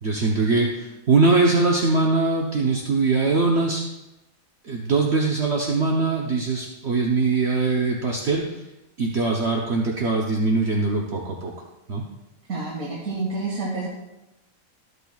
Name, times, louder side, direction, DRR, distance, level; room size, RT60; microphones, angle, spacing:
voice 1, 0.0-3.8 4.6-8.6 9.0-11.5 11.9-12.0, right 3 dB, 55° right, -1 dB, 1.1 m, -22 dB
voice 2, 12.5-13.9, right 3 dB, 80° right, -4 dB, 2.2 m, -28 dB
13.5 x 8.2 x 2.4 m, 0.95 s
omnidirectional pair, 1.5 m